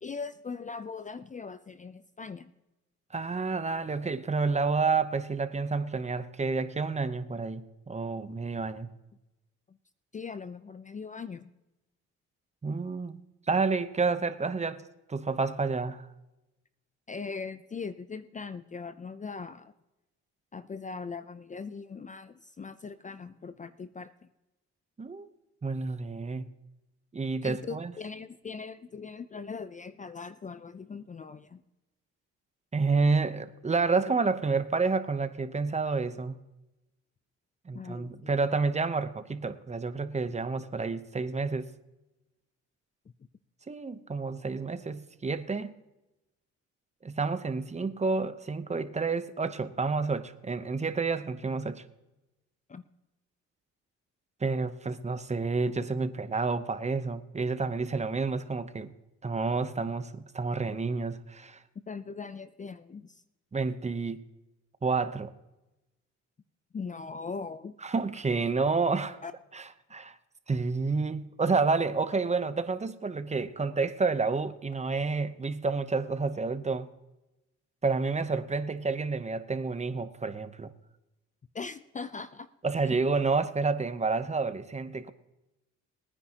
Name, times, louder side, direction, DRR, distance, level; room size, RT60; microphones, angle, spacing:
voice 1, 0.0-2.5 9.7-9.8 10.1-11.5 17.1-19.7 20.5-24.1 27.4-31.6 37.7-38.3 52.7-52.8 61.9-63.2 66.7-67.8 69.2-69.3 81.5-82.5 82.9-83.0, left 5 dB, 25° left, 0.5 m, -40 dB
voice 2, 3.1-8.9 12.6-13.2 13.5-14.8 15.1-16.1 25.0-25.3 25.6-26.4 27.1-27.9 32.7-36.4 37.7-41.7 43.7-45.8 47.0-51.8 54.4-58.9 59.2-61.6 63.5-64.2 64.8-65.3 67.8-69.2 69.5-70.1 70.5-76.9 77.8-80.7 82.6-85.1, right 4 dB, 25° right, 0.8 m, -29 dB
21.5 x 9.9 x 2.9 m
cardioid pair, 90°, 30 cm